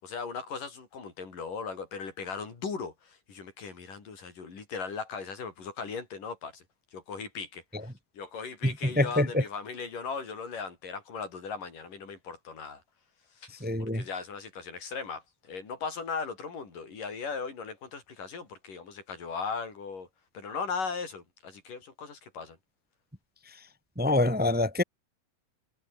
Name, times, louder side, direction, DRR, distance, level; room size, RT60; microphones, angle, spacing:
voice 1, 0.0-6.6 6.9-12.8 13.4-20.1 20.3-22.6, left 5 dB, 85° left, 6.6 m, -38 dB
voice 2, 9.0-9.4 13.6-14.0 24.0-24.8, left 1 dB, 5° right, 1.7 m, -25 dB
omnidirectional pair, 3.7 m